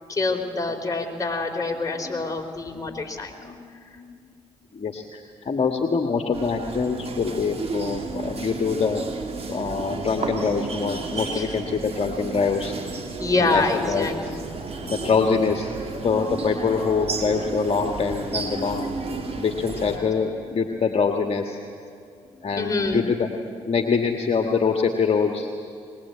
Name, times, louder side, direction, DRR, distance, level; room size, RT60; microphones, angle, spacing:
voice 1, 0.1-3.6 3.9-4.3 5.5-5.9 11.3-11.5 13.2-14.4 16.1-16.5 18.6-18.7 22.2-23.0 23.8-23.9, left 3 dB, 25° left, 3 dB, 3.7 m, -27 dB
voice 2, 4.7-9.0 9.5-12.7 13.4-14.4 14.8-15.7 16.0-18.9 19.4-21.6 22.4-23.3 23.6-25.5, left 5 dB, 45° left, 3 dB, 1.7 m, -24 dB
sound 1, 6.3-20.0, right 3 dB, 45° right, 3.4 m, -32 dB
21.5 x 20.5 x 8.5 m, 2.3 s
hypercardioid pair, 50°, 14 cm